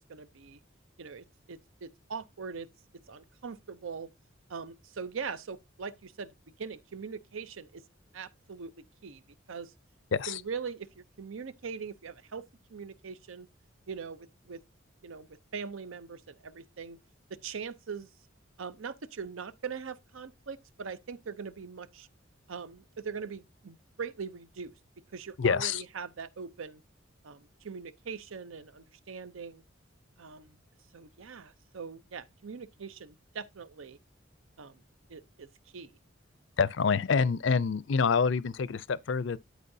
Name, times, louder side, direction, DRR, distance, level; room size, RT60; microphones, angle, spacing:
voice 1, 0.1-0.6 1.0-4.1 4.5-7.8 8.1-8.7 9.0-9.2 9.5-9.7 10.3-12.4 12.7-13.5 13.9-14.6 15.0-15.3 15.5-17.0 17.3-18.1 18.6-22.1 22.5-26.8 27.2-29.6 30.2-30.6 30.9-34.0 34.6-34.8 35.1-35.5 35.7-35.9, right 5 dB, 80° right, 0.6 m, -41 dB
voice 2, 25.4-25.8 36.6-39.4, left 5 dB, 65° left, 0.4 m, -27 dB
12.5 x 4.9 x 2.7 m
head